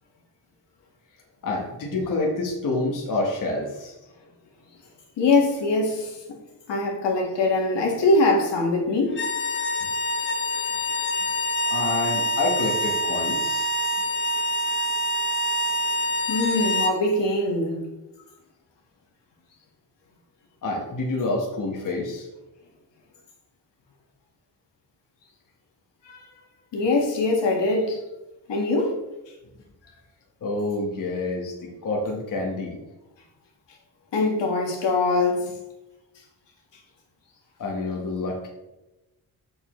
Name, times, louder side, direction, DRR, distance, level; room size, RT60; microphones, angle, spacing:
voice 1, 1.4-4.0 11.7-13.7 20.6-22.3 30.4-32.8 37.6-38.5, left 2 dB, 45° left, 1.3 m, -28 dB
voice 2, 5.2-6.4 6.7-9.2 13.6-13.7 16.3-17.7 26.0-26.2 26.7-28.0 28.5-29.0 34.1-35.5, left 2 dB, 75° left, 1.7 m, -22 dB
sound 1, 9.1-17.0, left 1 dB, 25° left, 0.6 m, -26 dB
6.9 x 6.7 x 3.1 m
wide cardioid pair, 155°, 43 cm